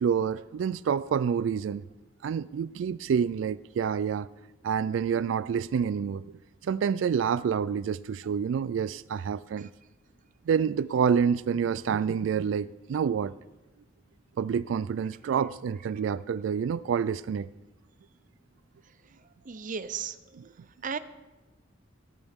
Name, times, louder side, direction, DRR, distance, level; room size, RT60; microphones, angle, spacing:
voice 1, 0.0-1.8 2.2-4.3 4.6-6.3 6.6-9.7 10.5-13.3 14.4-17.5, right 7 dB, 85° right, 0.3 m, -28 dB
voice 2, 19.4-20.4 20.8-21.0, right 6 dB, 45° right, 0.6 m, -35 dB
17.5 x 13.5 x 3.6 m
head